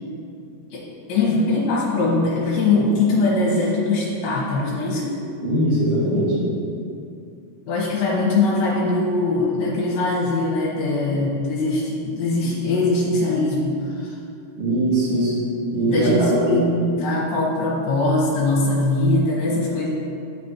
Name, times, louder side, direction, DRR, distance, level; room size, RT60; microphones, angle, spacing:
voice 1, 1.1-5.2 7.7-14.1 15.9-19.9, left 2 dB, 70° left, -7 dB, 2.8 m, -21 dB
voice 2, 5.4-6.3 14.6-15.3 15.7-16.5, right 1 dB, 80° right, -9 dB, 4.0 m, -20 dB
11.5 x 4.2 x 2.9 m, 2.5 s
omnidirectional pair, 4.9 m